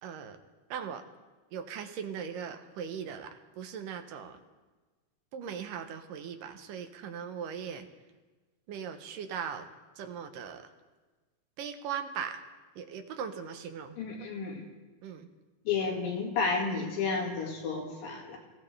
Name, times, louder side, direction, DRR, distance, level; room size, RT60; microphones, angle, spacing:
voice 1, 0.0-0.4 0.7-1.0 1.5-3.3 3.6-4.4 5.3-7.9 8.7-9.6 10.0-10.6 11.6-12.4 12.8-14.0 15.0-15.3, right 7 dB, 75° right, 7 dB, 2.6 m, -39 dB
voice 2, 14.0-14.6 15.7-18.4, left 4 dB, 90° left, -1 dB, 4.1 m, -31 dB
26.0 x 16.0 x 3.4 m, 1.3 s
omnidirectional pair, 3.9 m